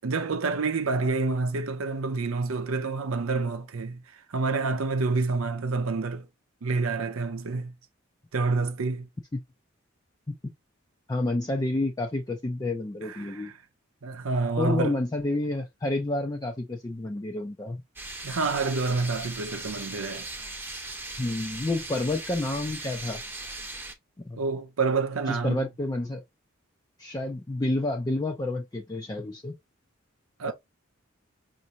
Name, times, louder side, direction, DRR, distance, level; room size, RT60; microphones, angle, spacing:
voice 1, 0.0-6.3 6.6-7.7 8.3-9.1 13.0-13.5 14.0-15.0 18.2-20.3 24.4-25.7 30.4-30.5, right 3 dB, 90° right, 0.6 m, -28 dB
voice 2, 11.1-13.5 14.6-17.8 21.2-23.2 24.2-24.4 25.3-26.2 27.0-29.5 30.5-30.6, left 2 dB, 20° left, 0.4 m, -29 dB
sound 1, 18.0-23.9, right 2 dB, 10° right, 0.7 m, -38 dB
5.2 x 2.6 x 2.8 m
head